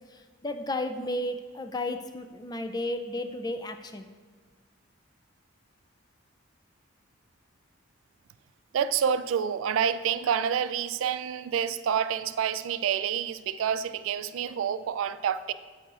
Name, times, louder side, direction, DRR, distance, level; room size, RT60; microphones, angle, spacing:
voice 1, 0.1-4.1, left 1 dB, 20° left, 0.3 m, -33 dB
voice 2, 8.7-15.5, right 8 dB, 70° right, 0.3 m, -28 dB
8.8 x 8.7 x 2.5 m
head